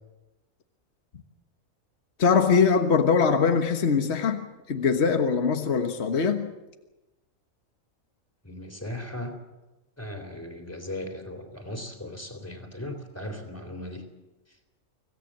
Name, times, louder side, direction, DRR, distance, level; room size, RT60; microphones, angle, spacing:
voice 1, 2.2-6.5, left 5 dB, 50° left, 5 dB, 1.6 m, -22 dB
voice 2, 8.4-9.3 10.0-14.0, left 1 dB, 10° left, 6 dB, 3.3 m, -37 dB
26.0 x 17.0 x 7.5 m, 1.1 s
omnidirectional pair, 1.4 m